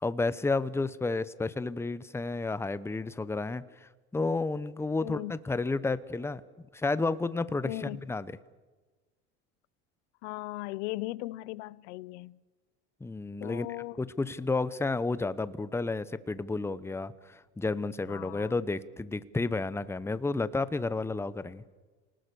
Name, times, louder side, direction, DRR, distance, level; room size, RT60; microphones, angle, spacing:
voice 1, 0.0-6.4 6.7-8.3 13.0-13.7 14.0-21.6, left 3 dB, 5° left, 0.8 m, -31 dB
voice 2, 5.0-5.3 7.6-8.0 10.2-12.4 13.4-14.0 18.1-18.5, left 19 dB, 75° left, 0.6 m, -38 dB
28.0 x 19.0 x 6.9 m
supercardioid pair, 105°, 34 cm